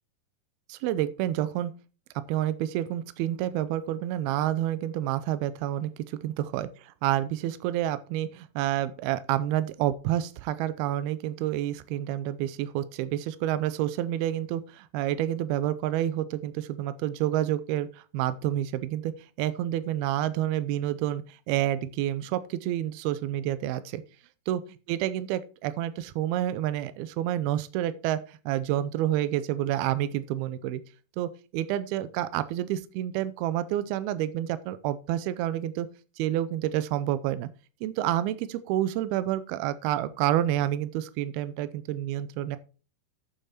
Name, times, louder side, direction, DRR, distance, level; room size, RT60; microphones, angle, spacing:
voice 1, 0.7-1.7 2.3-6.7 7.0-17.9 18.1-19.1 19.4-24.0 24.5-24.6 24.9-30.8 31.2-35.9 36.2-37.5 37.8-42.6, right 12 dB, 80° right, 2.6 m, -29 dB
8.7 x 7.3 x 4.2 m
omnidirectional pair, 4.5 m